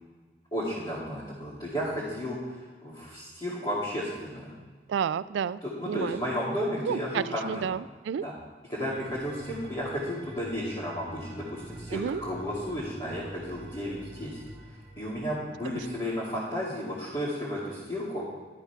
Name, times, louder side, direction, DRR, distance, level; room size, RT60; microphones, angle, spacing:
voice 1, 0.5-2.6 2.8-4.5 5.6-7.6 8.2-8.3 8.7-14.4 15.0-18.3, equal, 25° left, -8 dB, 2.3 m, -33 dB
voice 2, 4.9-5.6 5.9-6.2 6.8-8.2 11.9-12.2 15.6-15.9, right 7 dB, 85° right, 17 dB, 0.3 m, -31 dB
sound 1, 8.9-16.2, right 1 dB, 25° right, 1.2 m, -46 dB
12.0 x 5.7 x 5.7 m, 1.4 s
head